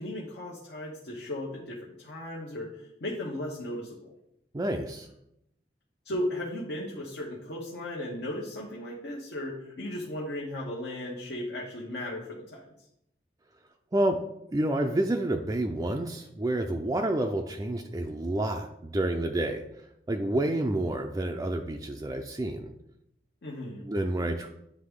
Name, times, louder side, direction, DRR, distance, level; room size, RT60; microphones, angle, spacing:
voice 1, 0.0-4.1 6.0-12.7 23.4-23.9, left 1 dB, 70° left, -3 dB, 1.1 m, -36 dB
voice 2, 4.5-5.1 13.9-14.2 14.5-19.6 20.1-22.7 23.8-24.5, right 1 dB, 20° right, 3 dB, 0.4 m, -29 dB
9.5 x 3.5 x 3.6 m, 0.79 s
head